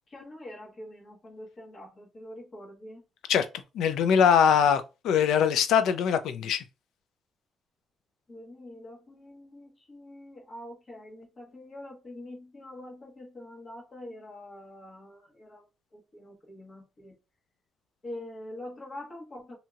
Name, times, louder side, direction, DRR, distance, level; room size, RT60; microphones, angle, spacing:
voice 1, 0.1-3.0 8.3-15.7 15.9-17.1 18.0-19.6, left 1 dB, 40° left, 1.3 m, -45 dB
voice 2, 3.7-6.6, left 7 dB, 80° left, 0.4 m, -22 dB
2.8 x 2.7 x 2.4 m
cardioid pair, 90°, 0 cm